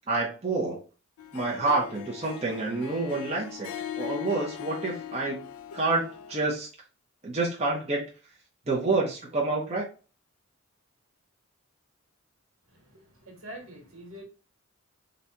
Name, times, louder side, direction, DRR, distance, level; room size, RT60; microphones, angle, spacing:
voice 1, 0.1-0.8 1.3-3.7 4.0-5.5 5.7-6.7 7.2-8.0 8.7-9.8, right 3 dB, 30° right, 0.7 m, -28 dB
Harp, 1.2-6.5, left 9 dB, 80° left, 0.3 m, -40 dB
voice 2, 12.7-14.2, right 1 dB, 80° right, 1.4 m, -45 dB
4.0 x 2.2 x 2.8 m
head